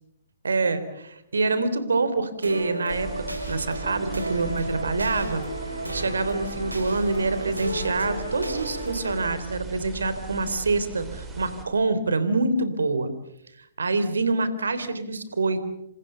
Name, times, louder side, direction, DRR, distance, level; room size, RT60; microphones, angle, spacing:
voice 1, 0.4-5.4 5.9-13.1 13.6-15.6, right 3 dB, 70° right, 13 dB, 3.5 m, -26 dB
sound 1, 2.4-9.3, equal, 90° right, 4.8 m, -33 dB
sound 2, 2.9-11.6, right 5 dB, 10° right, 5.2 m, -39 dB
28.0 x 26.5 x 6.9 m, 0.81 s
figure-of-eight pair, 125°, 0 cm